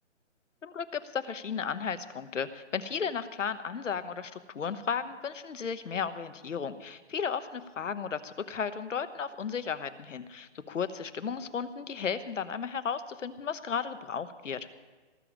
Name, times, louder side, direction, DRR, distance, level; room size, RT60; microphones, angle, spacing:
voice 1, 0.6-14.6, left 6 dB, 85° left, 12 dB, 1.2 m, -34 dB
18.5 x 7.1 x 7.4 m, 1.3 s
hypercardioid pair, 165°, 36 cm